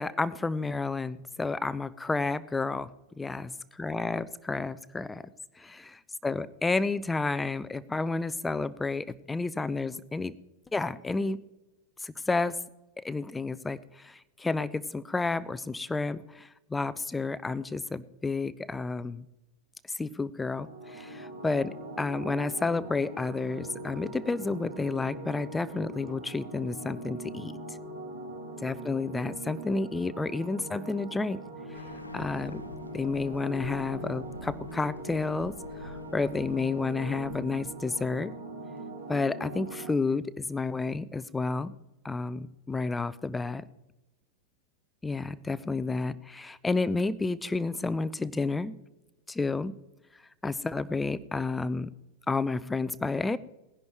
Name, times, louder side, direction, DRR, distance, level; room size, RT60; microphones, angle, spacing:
voice 1, 0.0-5.2 5.6-10.3 10.7-11.4 12.0-12.6 13.0-19.3 20.0-27.5 28.6-31.4 32.1-32.6 32.9-35.5 35.8-38.3 39.1-41.7 42.0-43.6 45.0-48.7 49.3-49.7 50.4-51.9 52.3-53.4, left 3 dB, 10° left, 17 dB, 0.6 m, -31 dB
sound 1, 20.5-39.9, right 1 dB, 70° right, 2.4 m, -41 dB
Bird, 31.7-37.9, left 2 dB, 80° left, 0.7 m, -47 dB
18.5 x 10.5 x 4.5 m, 0.99 s
figure-of-eight pair, 90°, 0 cm